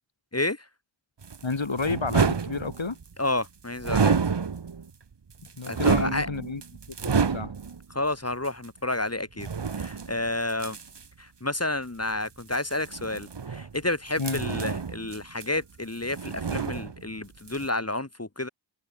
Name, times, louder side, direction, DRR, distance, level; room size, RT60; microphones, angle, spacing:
sound 1, 1.2-3.1 3.8-4.9 5.3-7.8 8.4-8.5 9.4-11.1 12.4-13.8 14.2-15.8 16.0-17.2 17.5-17.7, right 5 dB, 65° right, 1.2 m, -29 dB
voice 1, 1.4-3.0 5.6-6.6 7.0-7.5 14.2-14.4, left 4 dB, 90° left, 4.1 m, -30 dB
voice 2, 3.2-4.2 5.7-6.3 7.9-9.5 9.7-10.8 11.2-18.5, left 2 dB, 35° left, 2.7 m, -30 dB
wide cardioid pair, 55°, 45 cm